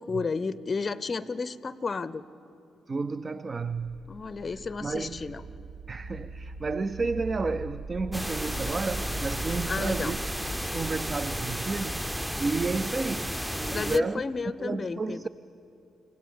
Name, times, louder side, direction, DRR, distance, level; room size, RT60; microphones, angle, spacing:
voice 1, 0.0-2.2 4.1-5.4 9.7-10.1 13.7-15.3, left 4 dB, 40° left, 17 dB, 0.5 m, -32 dB
voice 2, 2.9-4.0 4.8-5.3 5.9-10.2 10.7-14.2 14.6-15.3, right 3 dB, 40° right, 14 dB, 0.5 m, -32 dB
sound 1, 3.7-12.5, right 3 dB, 60° right, 1.1 m, -41 dB
sound 2, 8.1-14.0, equal, 5° right, 0.7 m, -33 dB
29.0 x 16.5 x 5.5 m, 2.8 s
hypercardioid pair, 45°, 0 cm